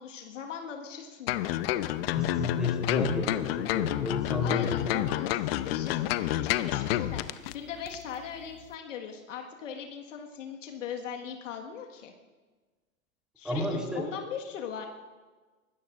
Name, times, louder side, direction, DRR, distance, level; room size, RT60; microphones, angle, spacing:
voice 1, 0.0-1.7 4.4-12.1 13.4-14.9, left 7 dB, 65° left, 2 dB, 1.8 m, -40 dB
sound 1, 1.3-7.5 7.9-8.0, left 14 dB, 45° left, 0.8 m, -29 dB
voice 2, 2.1-4.9 13.4-14.0, left 2 dB, ahead, 0 dB, 3.6 m, -32 dB
24.0 x 20.0 x 2.6 m, 1.3 s
hypercardioid pair, 110°, 40 cm